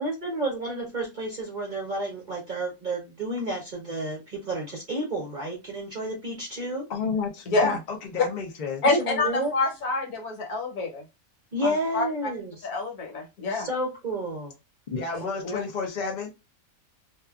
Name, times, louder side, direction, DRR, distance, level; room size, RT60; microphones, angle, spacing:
voice 1, 0.0-6.8 9.0-9.5 11.5-12.7 13.5-14.5, right 1 dB, 45° right, 0.6 m, -31 dB
voice 2, 6.9-8.8 14.9-16.3, left 5 dB, 55° left, 0.5 m, -31 dB
voice 3, 7.5-7.8 8.8-11.0 11.6-12.1 12.6-13.7 15.4-15.6, left 2 dB, 80° left, 1.4 m, -27 dB
2.7 x 2.4 x 2.3 m
omnidirectional pair, 1.6 m